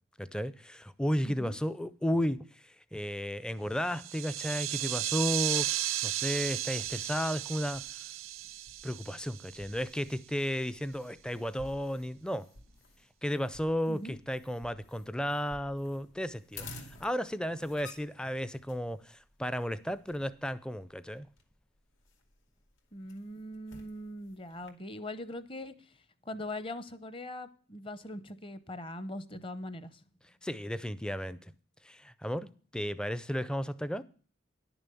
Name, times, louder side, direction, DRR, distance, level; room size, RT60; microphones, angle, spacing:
voice 1, 0.2-2.4 2.9-5.7 6.0-7.9 8.8-12.5 13.2-16.7 17.0-21.3 30.4-31.5 31.8-34.0, equal, 5° left, 0.4 m, -33 dB
voice 2, 1.2-1.6 13.9-14.1 22.9-25.7 26.3-29.9, left 1 dB, 25° left, 0.8 m, -41 dB
sound 1, 3.8-9.9, right 14 dB, 80° right, 0.6 m, -35 dB
sound 2, 6.2-24.7, left 3 dB, 70° left, 2.4 m, -54 dB
11.0 x 7.0 x 6.9 m
head